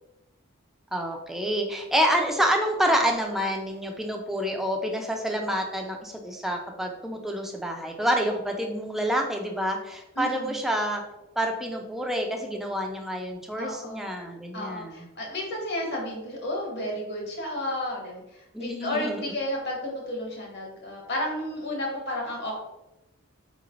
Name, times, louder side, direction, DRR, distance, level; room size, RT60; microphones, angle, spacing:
voice 1, 0.9-11.0 11.4-15.1 18.5-19.3, equal, ahead, 2 dB, 0.3 m, -28 dB
voice 2, 10.1-10.6 13.6-14.1 14.5-22.5, left 1 dB, 55° left, -1 dB, 1.0 m, -32 dB
3.9 x 3.1 x 2.4 m, 0.96 s
head